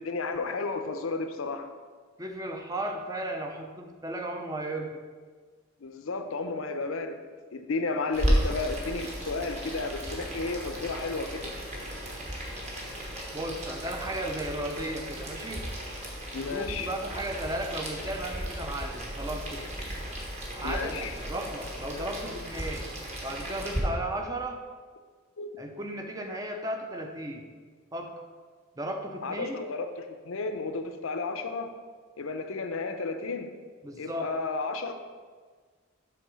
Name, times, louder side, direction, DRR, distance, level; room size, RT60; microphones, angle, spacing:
voice 1, 0.0-1.7 5.8-7.2 7.5-11.5 16.3-16.9 20.6-21.1 25.4-25.5 29.2-31.7 32.2-33.5 34.0-34.9, left 3 dB, 70° left, 7 dB, 0.6 m, -33 dB
voice 2, 2.2-5.0 13.3-15.7 16.5-19.7 20.6-22.9 23.2-24.6 25.6-27.5 27.9-28.3 28.8-29.6 33.8-34.4, right 1 dB, 15° right, 4 dB, 0.5 m, -35 dB
Boiling, 8.1-23.8, equal, 30° right, 1.2 m, -34 dB
7.9 x 3.7 x 6.2 m, 1.5 s
head